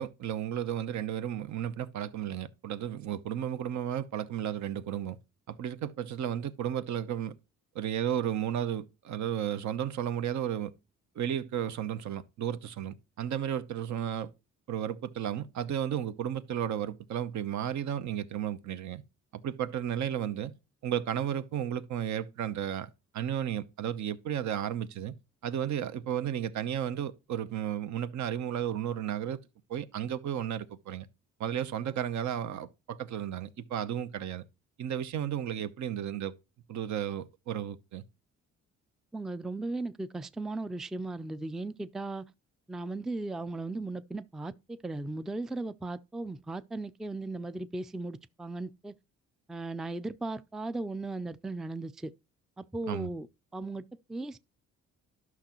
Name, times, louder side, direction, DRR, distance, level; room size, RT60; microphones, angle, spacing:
voice 1, 0.0-5.2 5.5-7.3 7.7-10.7 11.1-14.3 14.7-19.0 19.3-20.5 20.8-25.1 25.4-29.4 29.7-31.1 31.4-34.4 34.8-36.3 36.7-38.0 52.9-53.1, right 10 dB, 70° right, 0.8 m, -33 dB
voice 2, 39.1-42.3 42.7-48.9 49.5-52.1 52.6-53.3 53.5-54.4, right 2 dB, ahead, 0.3 m, -37 dB
11.5 x 5.9 x 3.0 m
cardioid pair, 90°, 30 cm